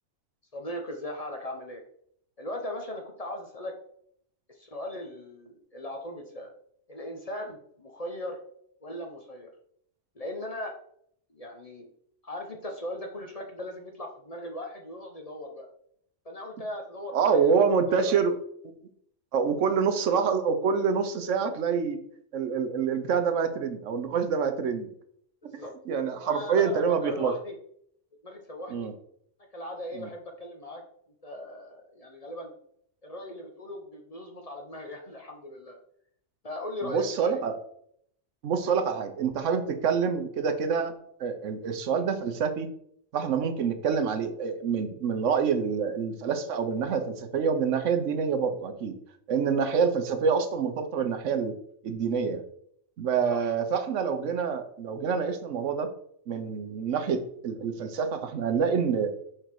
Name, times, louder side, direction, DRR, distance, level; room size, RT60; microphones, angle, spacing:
voice 1, 0.5-1.8 2.4-3.7 4.5-6.5 6.9-8.4 8.8-9.5 10.1-10.7 11.3-11.9 12.2-15.7 16.2-18.1 25.4-25.7 26.2-27.5 28.2-28.9 29.5-30.8 31.2-32.5 33.0-35.8 36.4-37.4 49.7-49.9 53.3-53.5, left 1 dB, 35° left, 2 dB, 0.8 m, -38 dB
voice 2, 17.1-18.4 19.3-22.0 22.3-24.9 25.9-27.3 28.7-28.9 29.9-30.1 36.8-37.5 38.4-40.9 41.2-42.7 43.1-48.9 49.3-51.5 51.8-52.4 53.0-55.9 56.3-59.1, right 6 dB, 75° right, 9 dB, 1.1 m, -26 dB
6.2 x 3.8 x 4.6 m, 0.68 s
omnidirectional pair, 1.3 m